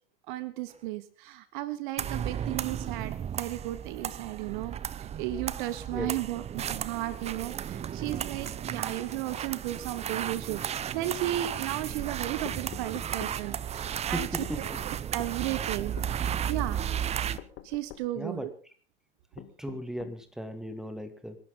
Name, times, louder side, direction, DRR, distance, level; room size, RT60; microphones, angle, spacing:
voice 1, 0.3-14.3 15.1-15.9 16.5-16.8 17.6-18.5, right 15 dB, 55° right, 15 dB, 1.3 m, -34 dB
sound 1, 2.0-17.4, right 9 dB, 20° right, 0.7 m, -34 dB
sound 2, 12.5-13.4 14.4-14.6 15.2-15.4 16.0-16.2 17.4-18.1 19.4-20.2, left 14 dB, 40° left, 1.8 m, -45 dB
voice 2, 14.1-14.8 18.2-18.5 19.3-21.4, equal, ahead, 8 dB, 2.4 m, -37 dB
27.0 x 11.5 x 3.9 m, 0.40 s
hypercardioid pair, 95°, 30 cm